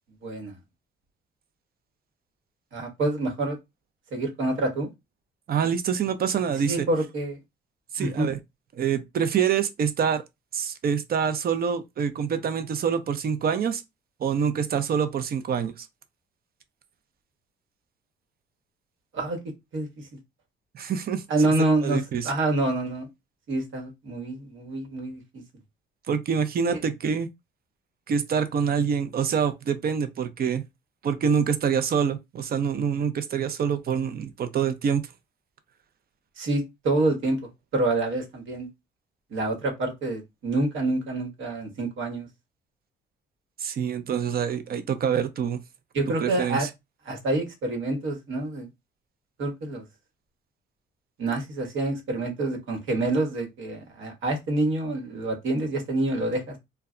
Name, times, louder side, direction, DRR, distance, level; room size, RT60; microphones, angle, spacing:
voice 1, 0.2-0.5 2.7-3.6 4.1-4.9 6.7-7.4 8.0-8.3 19.1-19.4 19.7-19.9 21.3-23.1 23.5-25.4 36.4-37.4 37.7-38.7 39.3-42.3 45.9-46.7 47.1-48.7 49.4-49.8 51.2-56.6, right 2 dB, 75° right, 1.1 m, -27 dB
voice 2, 5.5-6.9 7.9-8.4 8.7-10.2 10.5-13.8 14.2-15.9 20.7-21.2 21.8-22.3 26.1-27.3 28.1-30.6 31.0-35.0 43.6-45.6 46.1-46.7, right 7 dB, 50° right, 0.5 m, -26 dB
2.2 x 2.1 x 3.6 m
cardioid pair, 90°, 20 cm